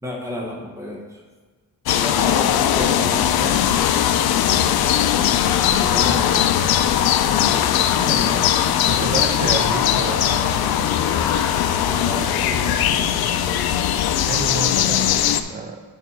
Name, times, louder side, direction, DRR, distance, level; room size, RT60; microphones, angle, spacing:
voice 1, 0.0-1.2 2.0-3.6 5.8-6.4 7.6-9.3 11.8-12.8, left 1 dB, 10° right, -2 dB, 1.1 m, -32 dB
sound 1, 1.9-15.4, left 10 dB, 80° left, 0.5 m, -19 dB
voice 2, 8.8-10.2 14.2-15.8, right 4 dB, 25° right, 3 dB, 0.4 m, -29 dB
sound 2, 9.8-15.4, left 4 dB, 40° left, 0.9 m, -35 dB
7.2 x 5.4 x 4.3 m, 1.4 s
wide cardioid pair, 170°, 36 cm